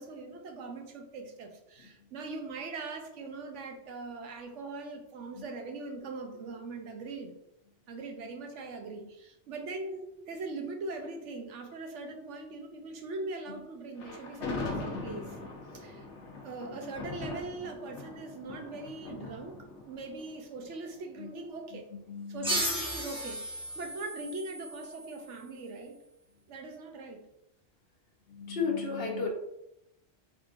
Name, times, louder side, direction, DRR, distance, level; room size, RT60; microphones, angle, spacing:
voice 1, 0.0-7.3 7.9-15.4 15.7-16.0 16.4-19.6 19.8-21.8 22.3-26.0 26.5-27.2, right 3 dB, 90° right, 4 dB, 1.1 m, -41 dB
Thunder, 14.0-21.2, left 3 dB, 80° left, 1.2 m, -41 dB
voice 2, 22.1-22.6 28.3-29.3, left 5 dB, 60° left, -3 dB, 1.1 m, -34 dB
sound 1, 22.4-25.7, right 1 dB, 5° right, 1.0 m, -35 dB
4.5 x 3.6 x 2.5 m, 0.80 s
omnidirectional pair, 1.2 m